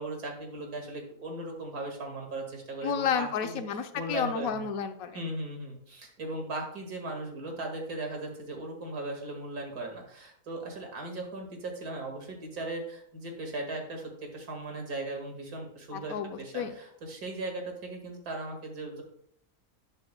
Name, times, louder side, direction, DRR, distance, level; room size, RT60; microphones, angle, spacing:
voice 1, 0.0-2.4 2.7-3.5 4.0-4.5 5.1-5.7 6.2-9.9 10.5-11.5 11.8-12.2 12.6-12.8 13.2-14.0 14.5-16.1 16.5-16.6 17.1-19.0, right 2 dB, 85° right, 2 dB, 2.5 m, -37 dB
voice 2, 2.8-5.2 15.9-16.8, left 7 dB, 70° left, 7 dB, 1.2 m, -31 dB
10.5 x 10.5 x 2.3 m, 0.69 s
omnidirectional pair, 1.6 m